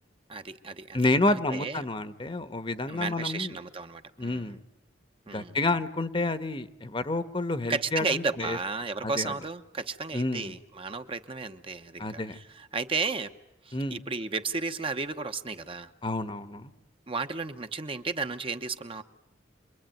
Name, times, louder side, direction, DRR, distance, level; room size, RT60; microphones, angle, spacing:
voice 1, 0.3-1.0 1.2-1.8 2.9-4.5 5.3-5.5 7.7-13.3 13.6-15.9 17.1-19.0, right 4 dB, 30° right, 8 dB, 1.0 m, -33 dB
voice 2, 0.9-3.5 4.2-4.6 5.3-8.6 9.0-9.3 10.1-10.5 12.0-12.4 13.7-14.0 16.0-16.7, left 2 dB, 30° left, 12 dB, 1.1 m, -29 dB
27.0 x 22.0 x 9.2 m, 0.87 s
head